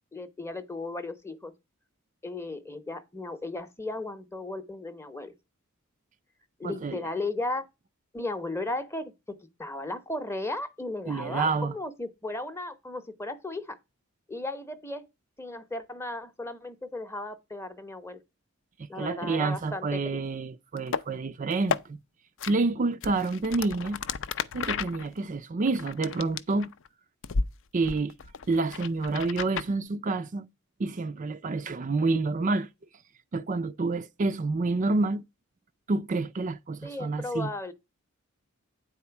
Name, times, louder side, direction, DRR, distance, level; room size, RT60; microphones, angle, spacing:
voice 1, 0.1-1.5 2.2-5.3 6.6-7.7 8.1-13.8 14.3-15.1 15.4-18.2 18.9-20.2 36.8-37.7, left 2 dB, 10° left, 0.8 m, -35 dB
voice 2, 6.6-7.0 11.1-11.7 18.8-22.0 22.5-24.0 24.5-26.7 27.7-28.1 28.5-30.5 30.8-32.7 33.3-35.2 35.9-37.5, right 3 dB, 35° right, 0.4 m, -28 dB
sound 1, 20.8-21.0 21.5-21.8 22.4-22.5 23.0-26.9 27.2-27.5 27.8-29.7, left 5 dB, 60° left, 0.5 m, -33 dB
9.3 x 4.3 x 5.8 m
head